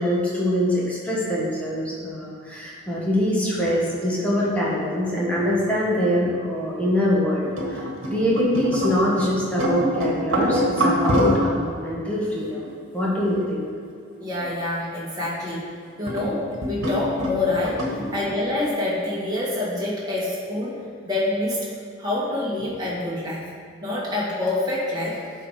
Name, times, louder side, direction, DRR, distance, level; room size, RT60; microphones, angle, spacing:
voice 1, 0.0-12.7 12.9-13.7 17.9-18.2, equal, 5° left, -5 dB, 1.3 m, -24 dB
sound 1, 7.4-9.3 9.6-11.6 12.3-12.7 13.3-13.5 14.1-14.5 15.2-15.3 16.1-16.3 16.5-18.1, equal, 75° right, 1.3 m, -24 dB
voice 2, 14.2-15.6 16.0-20.8 21.0-21.7 22.0-23.4 23.8-25.2, left 2 dB, 20° right, -7 dB, 1.8 m, -26 dB
9.8 x 3.6 x 4.8 m, 2.2 s
head